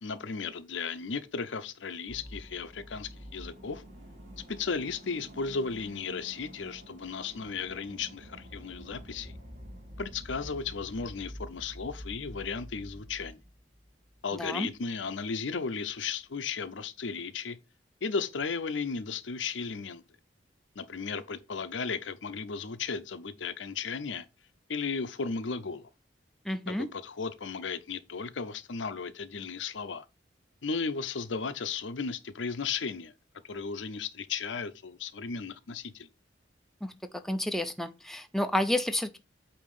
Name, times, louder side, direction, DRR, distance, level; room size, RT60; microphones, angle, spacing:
voice 1, 0.0-3.8 4.5-9.3 10.0-13.4 14.2-17.6 18.0-20.0 20.8-24.3 24.7-25.9 26.7-30.0 30.6-33.1 33.5-36.1, left 5 dB, 75° left, 0.7 m, -35 dB
sound 1, 2.1-14.5 14.8-14.9, equal, 40° right, 2.1 m, -47 dB
voice 2, 14.3-14.7 26.5-26.9 36.8-36.9 37.2-39.2, left 1 dB, ahead, 0.5 m, -30 dB
8.5 x 2.9 x 5.4 m
head